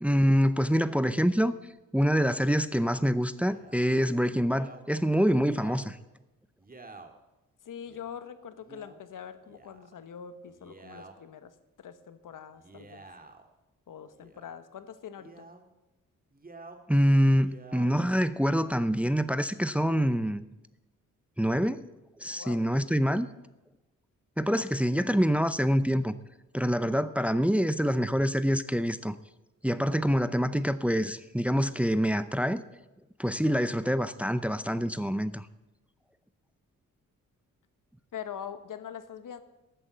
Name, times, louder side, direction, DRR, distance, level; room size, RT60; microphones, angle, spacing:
voice 1, 0.0-1.5 1.9-6.0 16.9-20.4 21.4-21.8 22.2-23.3 24.4-26.1 26.5-29.1 29.6-32.6 33.2-35.5, equal, 5° right, 13 dB, 0.7 m, -26 dB
Male speech man speaking, 3.4-3.8 4.5-4.8 5.3-5.8 6.6-7.1 7.8-8.1 8.6-9.0 9.4-10.0 10.5-11.1 12.5-13.5 14.1-14.5 15.2-15.6 16.3-16.8 17.3-17.9 18.6-19.2, right 3 dB, 25° right, 1.9 m, -50 dB
voice 2, 7.6-13.0 13.9-15.4 22.3-22.6 38.1-39.4, left 8 dB, 75° left, 11 dB, 1.3 m, -43 dB
14.0 x 9.1 x 7.5 m, 1.0 s
cardioid pair, 70°, 32 cm